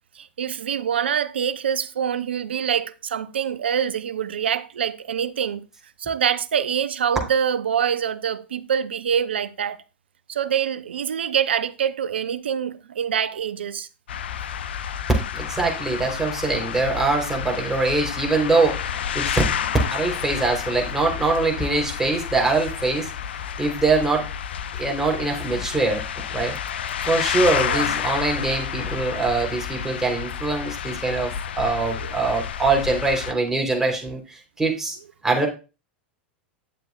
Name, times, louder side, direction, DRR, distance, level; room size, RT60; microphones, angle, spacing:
voice 1, 0.2-5.6 6.0-9.8 10.3-13.9 27.7-28.0 32.0-32.1, right 8 dB, 80° right, 0.6 m, -25 dB
sound 1, 14.1-33.3, left 9 dB, 75° left, 0.5 m, -30 dB
voice 2, 15.3-19.4 19.9-23.1 23.6-24.3 24.7-26.0 26.3-26.6 27.0-35.0 35.2-35.5, right 3 dB, 10° right, 3.6 m, -23 dB
11.0 x 7.5 x 2.4 m
hypercardioid pair, 95°, 6 cm